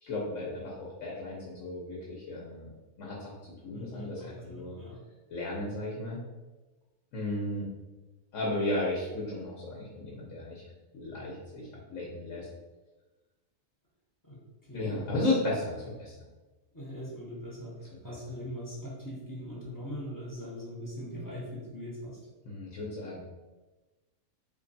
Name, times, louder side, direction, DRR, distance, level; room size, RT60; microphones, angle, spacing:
voice 1, 0.0-2.7 3.0-3.3 3.6-4.7 5.3-6.2 7.1-7.7 8.3-10.6 10.9-12.5 14.7-16.1 22.4-23.2, left 2 dB, 75° left, -4 dB, 1.1 m, -34 dB
voice 2, 3.6-5.0 14.2-15.4 16.7-22.2, equal, 20° left, -5 dB, 0.6 m, -41 dB
3.4 x 2.2 x 3.9 m, 1.2 s
omnidirectional pair, 1.3 m